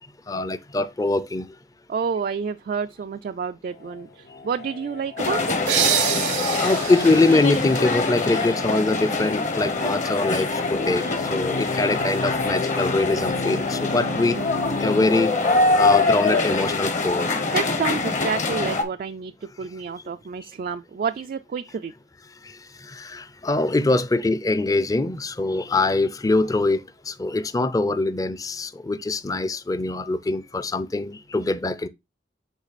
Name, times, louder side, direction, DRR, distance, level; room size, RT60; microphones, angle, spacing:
voice 1, 0.3-1.5 6.6-11.0 11.3-14.4 14.8-15.3 15.7-17.3 23.0-26.8 27.1-31.9, left 2 dB, 20° left, 0.5 m, -23 dB
voice 2, 1.9-4.1 4.4-5.6 17.5-19.3 19.6-21.9, right 6 dB, 50° right, 0.3 m, -29 dB
sound 1, 3.8-15.1, left 3 dB, 60° left, 0.7 m, -34 dB
sound 2, 5.2-18.8, left 3 dB, 45° left, 1.1 m, -24 dB
sound 3, 5.7-9.1, right 10 dB, 90° right, 0.8 m, -27 dB
8.2 x 3.2 x 4.1 m
head